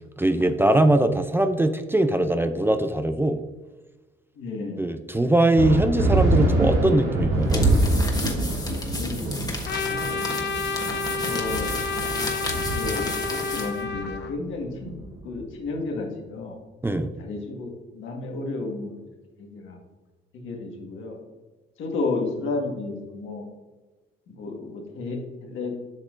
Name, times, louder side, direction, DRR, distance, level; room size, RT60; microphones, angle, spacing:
voice 1, 0.2-3.4 4.8-7.7 16.8-17.1, right 1 dB, 10° right, 9 dB, 0.4 m, -21 dB
voice 2, 4.3-4.8 8.5-9.5 9.8-10.2 11.2-11.7 12.7-15.0 15.2-16.6 17.2-19.0 19.4-19.8 20.3-21.2 21.8-23.5 24.3-25.8, left 3 dB, 80° left, 1 dB, 1.7 m, -32 dB
sound 1, 5.5-15.5, right 2 dB, 90° right, 2.2 m, -25 dB
sound 2, 7.4-13.8, left 2 dB, 20° left, 1.3 m, -33 dB
Trumpet, 9.6-14.3, left 4 dB, 60° left, 0.6 m, -30 dB
8.1 x 5.9 x 2.6 m, 1.2 s
cardioid pair, 90°, 20 cm